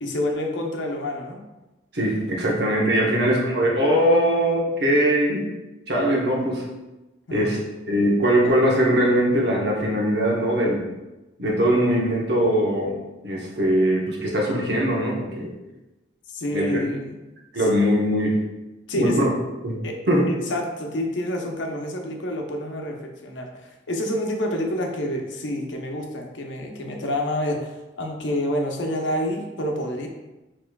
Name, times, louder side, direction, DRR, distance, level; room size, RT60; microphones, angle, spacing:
voice 1, 0.0-1.4 3.0-3.3 7.3-7.5 16.3-17.2 17.6-17.7 18.9-19.3 19.8-20.0 20.3-30.1, left 1 dB, 90° left, 2 dB, 0.7 m, -28 dB
voice 2, 1.9-5.5 5.9-6.6 7.3-7.6 7.9-10.8 11.4-13.0 13.2-15.5 16.5-16.8 17.5-18.4 18.9-19.3 19.6-19.8 20.1-20.2, equal, 65° right, -3 dB, 1.1 m, -21 dB
6.6 x 3.1 x 2.3 m, 1.0 s
head